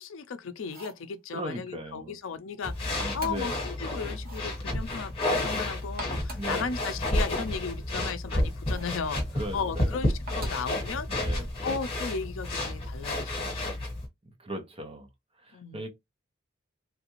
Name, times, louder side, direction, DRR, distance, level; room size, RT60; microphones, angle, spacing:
voice 1, 0.0-13.7 15.5-15.8, left 5 dB, 70° left, 0.5 m, -36 dB
sound 1, 0.6-1.1 3.0-3.6 4.2-4.5 5.8-6.6 8.6-9.0 10.3-10.7 12.4-12.8, right 1 dB, 50° right, 1.2 m, -44 dB
voice 2, 1.3-2.1 3.0-3.7 6.3-6.8 9.3-10.0 11.1-11.5 14.4-15.1 15.4-15.9, equal, 30° right, 0.8 m, -38 dB
sound 2, 2.6-14.1, left 1 dB, 30° left, 1.4 m, -31 dB
3.3 x 2.4 x 3.0 m
head